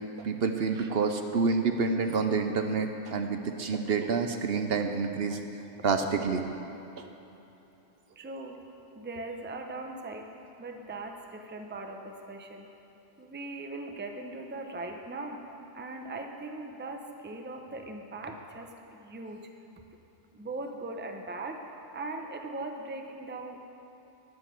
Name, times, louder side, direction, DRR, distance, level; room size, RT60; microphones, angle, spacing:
voice 1, 0.2-5.4 5.8-6.4 7.0-7.1, right 4 dB, 60° right, 6 dB, 0.9 m, -28 dB
voice 2, 8.2-8.7 8.9-12.7 13.2-19.4 20.3-23.6, right 2 dB, 10° right, 4 dB, 0.7 m, -40 dB
10.5 x 9.6 x 7.5 m, 3.0 s
omnidirectional pair, 1.2 m